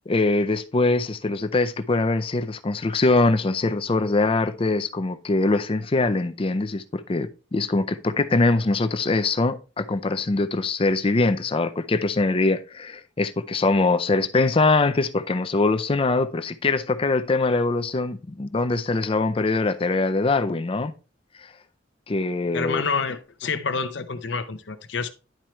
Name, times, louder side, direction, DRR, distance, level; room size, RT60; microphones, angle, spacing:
voice 1, 0.1-20.9 21.4-21.5 22.1-22.8, left 3 dB, 30° left, 0.5 m, -23 dB
voice 2, 22.5-25.1, left 5 dB, 65° left, 0.7 m, -28 dB
10.5 x 4.4 x 3.1 m
head